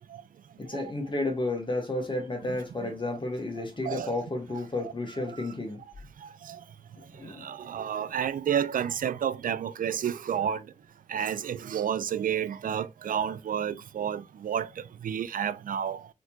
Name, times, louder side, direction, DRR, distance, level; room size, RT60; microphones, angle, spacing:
voice 1, 0.6-5.8 7.1-7.5, left 2 dB, 35° left, 1.1 m, -32 dB
voice 2, 3.6-4.2 4.5-4.9 5.4-5.5 6.2-6.6 7.2-10.7 11.1-16.1, right 8 dB, 75° right, 0.4 m, -31 dB
4.3 x 2.9 x 2.3 m
cardioid pair, 65°, 14 cm